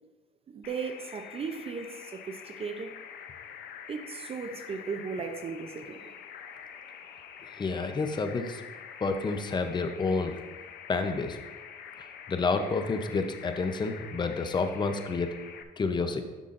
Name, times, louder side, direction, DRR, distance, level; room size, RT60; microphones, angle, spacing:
voice 1, 0.5-2.9 3.9-6.7, right 5 dB, 35° right, 7 dB, 0.5 m, -37 dB
sound 1, 0.6-15.6, left 8 dB, 70° left, 0.6 m, -46 dB
voice 2, 7.6-8.6 9.0-10.4 10.9-11.4 12.0-15.3 15.8-16.2, left 4 dB, 25° left, 7 dB, 0.7 m, -29 dB
10.5 x 5.6 x 2.5 m, 1.2 s
cardioid pair, 110°, 17 cm